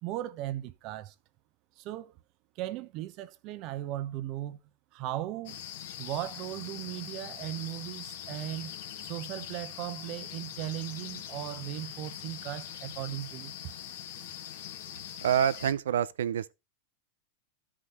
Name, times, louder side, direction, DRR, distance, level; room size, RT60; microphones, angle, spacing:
voice 1, 0.0-1.1 1.8-2.2 2.5-4.6 4.9-5.6 6.0-8.8 9.0-13.6, right 14 dB, 45° right, 0.9 m, -37 dB
sound 1, 5.4-15.7, left 10 dB, 65° left, 2.2 m, -42 dB
voice 2, 15.2-16.5, right 9 dB, 85° right, 0.7 m, -27 dB
12.5 x 5.0 x 4.4 m
hypercardioid pair, 120°, 0 cm